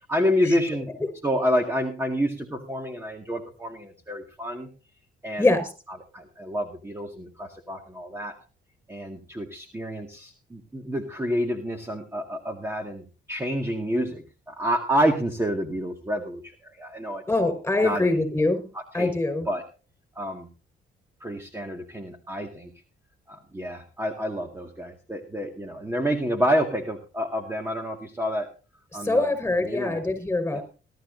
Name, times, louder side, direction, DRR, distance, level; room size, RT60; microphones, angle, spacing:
voice 1, 0.1-0.9 1.2-4.7 5.2-5.5 6.1-8.4 8.9-17.2 17.8-18.1 18.9-19.1 19.5-19.6 20.2-20.5 21.2-22.7 23.3-28.5 28.9-29.3 29.6-30.0 30.5-30.6, equal, 10° right, 3 dB, 2.1 m, -28 dB
voice 2, 5.4-5.7 17.3-18.7 18.9-19.5 28.9-30.6, left 2 dB, 10° left, 8 dB, 5.5 m, -24 dB
20.0 x 13.0 x 2.7 m, 0.33 s
cardioid pair, 90°, 20 cm